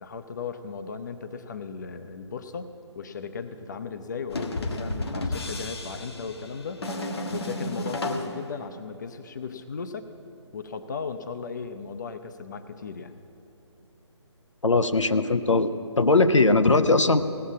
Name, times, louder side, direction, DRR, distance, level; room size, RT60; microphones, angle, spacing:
voice 1, 0.0-2.7 3.0-6.9 7.3-10.1 10.5-13.2, left 5 dB, 40° left, 9 dB, 0.6 m, -36 dB
sound 1, 4.3-8.4, left 2 dB, 55° left, 1.3 m, -32 dB
voice 2, 14.6-17.2, left 3 dB, 80° left, 10 dB, 0.7 m, -20 dB
17.5 x 7.1 x 8.4 m, 2.8 s
figure-of-eight pair, 145°, 15 cm